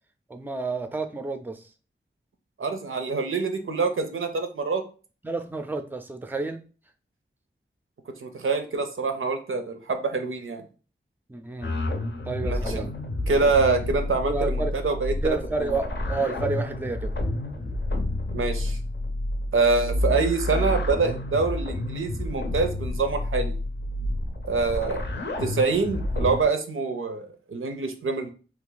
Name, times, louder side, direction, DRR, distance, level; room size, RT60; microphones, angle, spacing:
voice 1, 0.3-1.6 5.2-6.6 11.3-11.7 12.2-12.9 14.2-14.7 15.2-17.1, right 3 dB, 10° right, 8 dB, 0.4 m, -30 dB
voice 2, 2.6-4.8 8.2-10.6 12.4-12.8 13.3-15.8 18.3-18.8 19.5-23.6 24.5-25.0 25.4-28.3, right 4 dB, 85° right, 6 dB, 0.5 m, -25 dB
sound 1, 11.6-26.4, left 1 dB, 60° left, 0.5 m, -29 dB
2.5 x 2.4 x 3.8 m, 0.37 s
wide cardioid pair, 60°, 21 cm